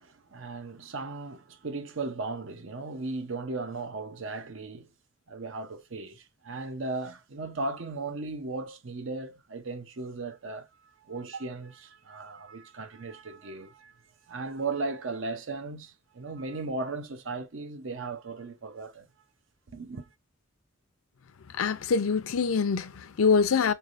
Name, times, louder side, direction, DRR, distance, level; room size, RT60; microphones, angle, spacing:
voice 1, 0.0-4.9 5.3-10.7 11.1-14.0 14.3-19.1 19.7-20.1, right 3 dB, 60° right, 0.7 m, -36 dB
voice 2, 21.5-23.7, left 5 dB, 80° left, 0.5 m, -24 dB
4.1 x 3.3 x 2.5 m
head